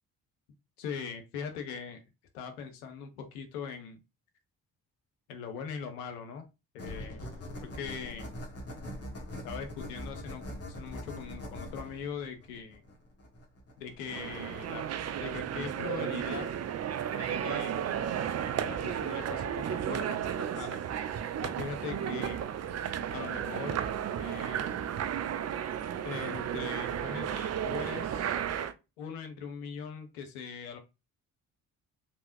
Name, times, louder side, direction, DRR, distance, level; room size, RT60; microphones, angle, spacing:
voice 1, 0.8-2.0 2.3-4.0 5.3-6.5 6.7-7.2 7.6-8.4 9.4-12.8 13.8-14.8 15.2-16.5 17.2-17.8 18.6-20.8 21.4-22.5 23.1-23.8 24.2-24.8 26.0-28.4 29.0-30.8, left 6 dB, 85° left, 6 dB, 0.7 m, -41 dB
sound 1, 6.8-15.3, equal, 35° left, 1.5 m, -43 dB
sound 2, 14.1-28.7, right 9 dB, 40° right, 0.5 m, -33 dB
3.4 x 2.8 x 2.5 m, 0.26 s
hypercardioid pair, 45°, 43 cm